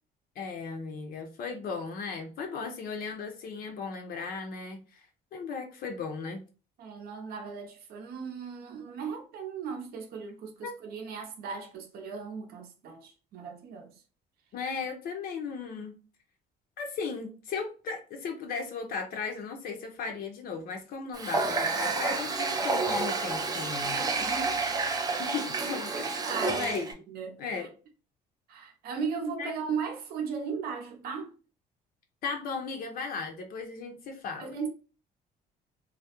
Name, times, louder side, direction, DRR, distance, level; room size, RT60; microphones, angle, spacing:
voice 1, 0.4-5.1 5.3-6.4 10.6-10.7 14.5-15.9 16.8-24.1 25.2-26.2 26.4-26.9 27.4-27.7 29.2-29.5 32.2-34.5, left 5 dB, 60° left, 0.5 m, -36 dB
voice 2, 6.8-13.9 24.2-24.6 25.9-27.7 28.5-31.3 34.4-34.7, right 6 dB, 65° right, 0.6 m, -37 dB
Water tap faucet, 21.1-26.9, right 3 dB, 25° right, 0.4 m, -30 dB
2.3 x 2.0 x 2.8 m
cardioid pair, 110°, 17 cm